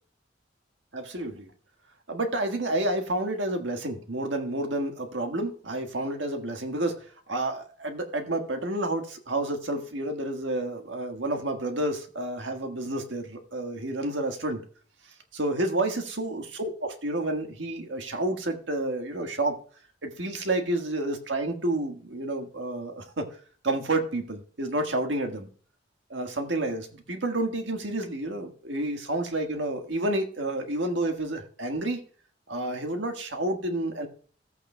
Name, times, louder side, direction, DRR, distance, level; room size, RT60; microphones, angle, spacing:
voice 1, 0.9-1.5 2.1-14.6 15.3-19.6 20.0-23.3 23.6-25.5 26.1-32.0 32.5-34.1, right 1 dB, 80° right, 4 dB, 1.5 m, -30 dB
14.5 x 8.5 x 2.2 m, 0.42 s
head